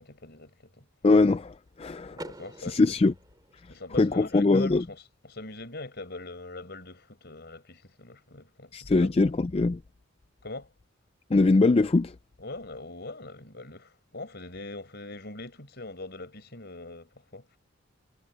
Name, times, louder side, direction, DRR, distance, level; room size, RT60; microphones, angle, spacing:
voice 1, 0.0-0.9 2.1-2.9 3.7-9.3 10.4-10.7 12.4-17.5, left 2 dB, 50° left, 4.9 m, -42 dB
voice 2, 1.0-2.2 2.7-3.1 4.0-4.8 8.7-9.8 11.3-12.1, left 3 dB, 25° left, 0.4 m, -22 dB
Car / Door, 2.1-4.1, right 1 dB, 20° right, 3.9 m, -46 dB
head